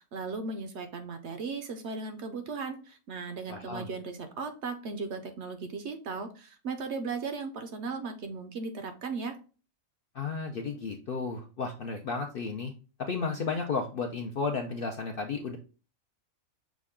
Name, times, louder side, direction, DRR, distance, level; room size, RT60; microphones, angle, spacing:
voice 1, 0.0-9.4, right 4 dB, 65° right, 7 dB, 0.8 m, -37 dB
voice 2, 3.5-3.9 10.1-12.7 13.0-15.6, left 4 dB, 60° left, 2 dB, 0.6 m, -33 dB
6.1 x 2.2 x 3.5 m, 0.35 s
omnidirectional pair, 1.5 m